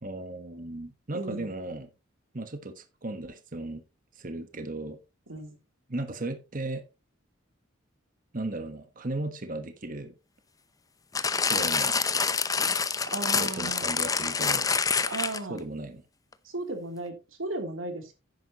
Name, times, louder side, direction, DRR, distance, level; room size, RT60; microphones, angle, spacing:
voice 1, 0.0-1.9 2.3-3.8 4.2-5.0 5.9-6.8 8.3-10.1 11.5-12.0 13.3-14.7 15.5-16.0, right 2 dB, 45° right, 1.3 m, -36 dB
voice 2, 1.1-1.5 5.3-5.6 13.1-13.9 15.1-15.6 16.4-18.1, right 2 dB, 85° right, 3.1 m, -35 dB
sound 1, 11.2-15.6 16.3-16.4, left 5 dB, 20° left, 0.6 m, -27 dB
10.0 x 10.0 x 3.0 m
head